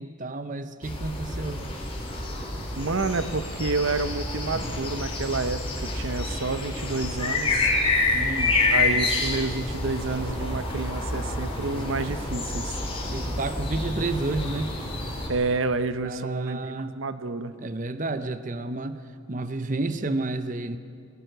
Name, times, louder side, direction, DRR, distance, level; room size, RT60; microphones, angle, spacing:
voice 1, 0.0-1.6 8.1-8.6 13.1-14.7 16.0-17.0 17.6-19.0 19.3-20.8, right 2 dB, 40° right, 11 dB, 0.7 m, -31 dB
sound 1, 0.8-15.3, left 2 dB, 25° left, 4.0 m, -28 dB
voice 2, 2.7-7.7 8.7-12.8 15.3-17.5, right 3 dB, 75° right, 12 dB, 0.8 m, -29 dB
21.0 x 18.5 x 7.9 m, 2.3 s
head